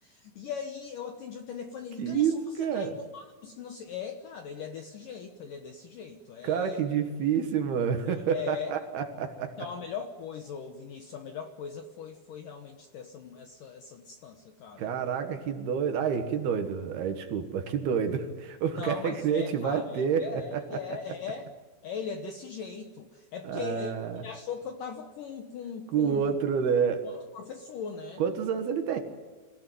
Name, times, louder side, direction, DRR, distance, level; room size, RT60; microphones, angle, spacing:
voice 1, 0.0-6.8 8.3-8.7 9.6-14.9 18.7-21.5 21.8-23.9 24.2-26.3 27.0-28.2, left 6 dB, 70° left, 5 dB, 2.1 m, -39 dB
voice 2, 2.0-2.9 6.4-9.7 14.8-20.8 23.4-24.2 25.9-27.1 28.2-29.0, right 7 dB, 65° right, 7 dB, 3.2 m, -28 dB
26.5 x 16.5 x 9.3 m, 1.4 s
omnidirectional pair, 5.4 m